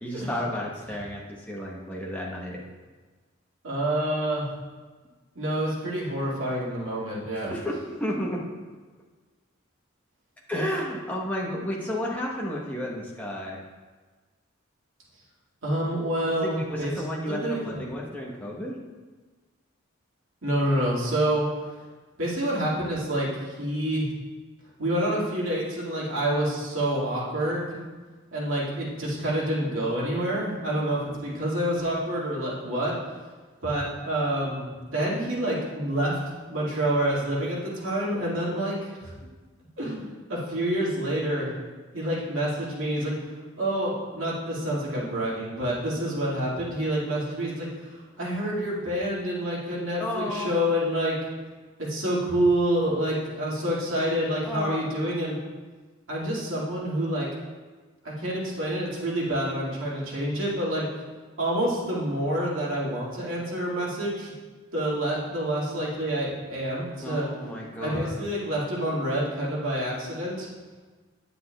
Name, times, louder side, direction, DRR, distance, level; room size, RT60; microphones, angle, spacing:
voice 1, 0.0-2.6 7.3-8.4 10.5-13.6 16.4-18.8 50.0-50.6 54.4-54.8 67.0-68.1, equal, 5° left, -4 dB, 1.0 m, -32 dB
voice 2, 3.6-4.5 5.4-7.5 15.6-16.9 17.3-17.7 20.4-21.5 22.2-23.3 23.6-24.1 24.8-27.8 28.3-33.0 33.6-36.2 36.5-39.1 39.8-41.5 41.9-43.2 43.6-47.9 48.2-51.2 51.8-55.4 56.1-57.3 58.0-60.9 61.4-64.3 64.7-67.3 67.8-70.5, right 1 dB, 75° right, -6 dB, 2.1 m, -27 dB
9.3 x 7.9 x 2.3 m, 1.4 s
head